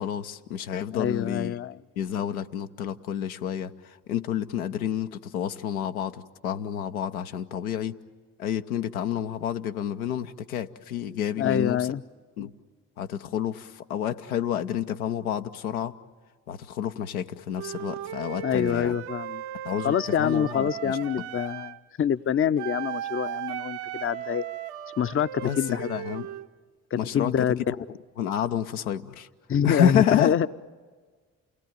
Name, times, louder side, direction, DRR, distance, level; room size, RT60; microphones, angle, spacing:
voice 1, 0.0-1.6 2.0-8.0 8.4-11.9 12.4-12.5 13.0-16.0 16.5-19.0 19.6-21.0 25.4-26.3 27.0-27.5 28.2-29.3 29.6-30.4, left 9 dB, 80° left, 7 dB, 0.8 m, -29 dB
voice 2, 0.9-1.8 11.4-12.0 18.4-19.4 19.8-24.4 25.0-25.9 26.9-27.6 29.5-30.5, left 8 dB, 30° left, 16 dB, 0.7 m, -26 dB
Wind instrument woodwind instrument, 17.6-21.8 22.6-26.5, right 12 dB, 65° right, 1.1 m, -36 dB
28.5 x 18.5 x 9.2 m, 1.5 s
figure-of-eight pair, 40°, 42 cm